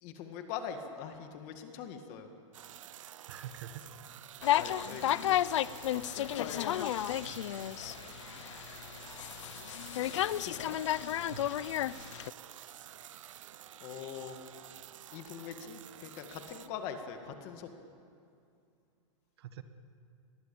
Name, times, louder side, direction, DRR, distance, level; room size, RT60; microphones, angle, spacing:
voice 1, 0.0-2.3 4.5-5.4 5.9-6.8 9.8-10.8 13.8-14.4 15.1-17.7, left 7 dB, 30° left, 6 dB, 2.0 m, -43 dB
sound 1, 2.5-16.7, right 11 dB, 80° right, 0.9 m, -50 dB
voice 2, 3.3-3.8 4.4-4.9 7.2-7.4 11.3-11.5 12.6-12.8 19.4-19.6, right 10 dB, 50° right, 9 dB, 1.6 m, -47 dB
sound 2, 4.4-12.3, left 12 dB, 65° left, 0.6 m, -33 dB
28.0 x 21.5 x 8.7 m, 2.5 s
supercardioid pair, 180°, 16 cm